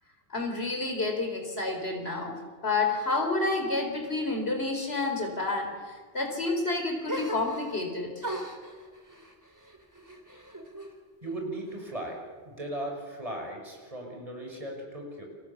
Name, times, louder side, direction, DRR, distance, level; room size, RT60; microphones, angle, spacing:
voice 1, 0.3-8.2, left 3 dB, 80° left, 4 dB, 4.4 m, -30 dB
sound 1, 7.1-7.9 8.2-10.9 11.3-12.1, right 1 dB, 15° right, 3.1 m, -40 dB
voice 2, 11.2-15.3, right 1 dB, 35° right, 1 dB, 6.4 m, -37 dB
29.5 x 25.5 x 7.2 m, 1.5 s
omnidirectional pair, 1.1 m